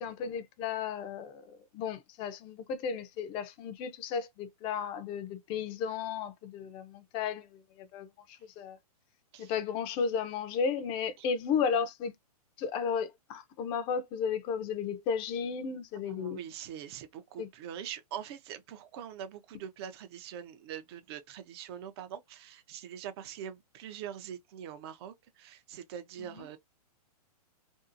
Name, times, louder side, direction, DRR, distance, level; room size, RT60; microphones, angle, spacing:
voice 1, 0.0-8.8 9.4-12.1 12.6-16.4 17.4-17.5 26.4-26.5, left 6 dB, 25° left, 0.5 m, -34 dB
voice 2, 15.9-26.6, right 9 dB, 40° right, 0.5 m, -43 dB
2.6 x 2.4 x 2.4 m
hypercardioid pair, 140°, 20 cm